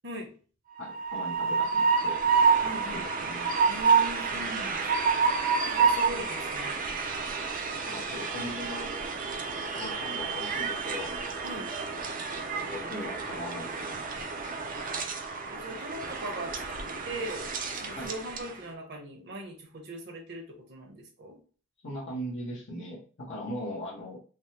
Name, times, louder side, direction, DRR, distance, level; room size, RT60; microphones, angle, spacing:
voice 1, 0.8-2.2 2.6-3.6 7.8-9.1 9.7-11.1 12.6-14.3 18.0-18.1 21.8-24.2, left 1 dB, 65° left, -5 dB, 0.9 m, -39 dB
Train, 0.8-18.6, right 5 dB, 45° right, 0.5 m, -29 dB
voice 2, 2.6-3.1 3.7-5.1 5.7-6.8 11.4-11.7 15.5-17.5 17.8-21.4, right 1 dB, 60° right, 1 dB, 0.9 m, -40 dB
3.4 x 2.1 x 2.8 m, 0.39 s
head